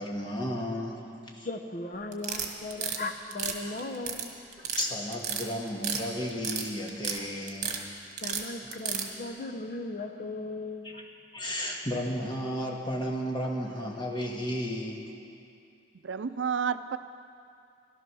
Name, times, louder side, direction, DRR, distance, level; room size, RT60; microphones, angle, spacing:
voice 1, 0.0-1.5 3.6-3.8 4.6-7.8 10.8-11.1 11.3-15.1, equal, 25° left, 0 dB, 1.7 m, -33 dB
voice 2, 1.4-4.3 8.2-11.0, left 2 dB, 45° left, 5 dB, 0.8 m, -37 dB
sound 1, 2.1-3.0 3.3-4.3 4.5-4.9 5.1-6.0 6.3-7.2 7.5-7.8 8.2-9.1, right 7 dB, 45° right, 1.4 m, -32 dB
voice 3, 16.0-17.0, right 6 dB, 85° right, 13 dB, 0.5 m, -30 dB
15.0 x 12.5 x 6.2 m, 2.5 s
head